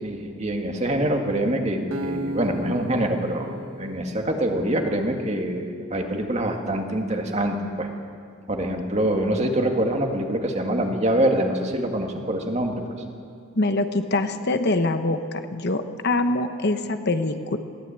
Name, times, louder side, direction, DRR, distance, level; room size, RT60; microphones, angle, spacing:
voice 1, 0.0-7.9 8.5-12.8, right 1 dB, 30° right, 3 dB, 2.0 m, -25 dB
Acoustic guitar, 1.9-5.1, right 1 dB, 75° right, 1.2 m, -35 dB
voice 2, 13.6-17.6, left 2 dB, 50° left, 8 dB, 1.0 m, -24 dB
21.5 x 16.0 x 9.0 m, 2.3 s
head